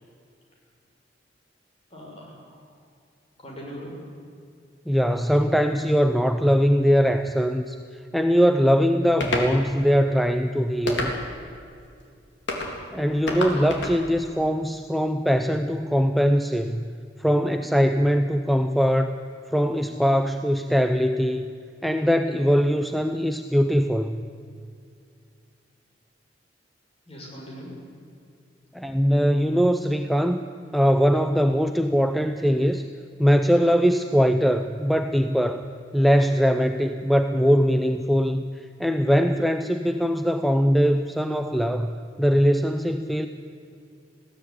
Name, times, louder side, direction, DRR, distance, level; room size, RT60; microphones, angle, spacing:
voice 1, 1.9-2.6 3.4-4.0 13.3-13.5 27.1-27.8, equal, 35° left, -2 dB, 6.7 m, -40 dB
voice 2, 4.9-7.8 8.1-11.1 12.9-16.8 17.2-19.1 19.5-21.5 21.8-24.2 28.7-30.4 30.7-32.8 33.2-35.7 35.9-38.5 38.8-41.9 42.2-43.3, equal, ahead, 8 dB, 0.6 m, -21 dB
sound 1, 9.2-9.5 10.9-11.4 12.5-12.7 13.3-14.0, left 2 dB, 85° left, 3.6 m, -28 dB
20.5 x 16.0 x 9.8 m, 2.3 s
head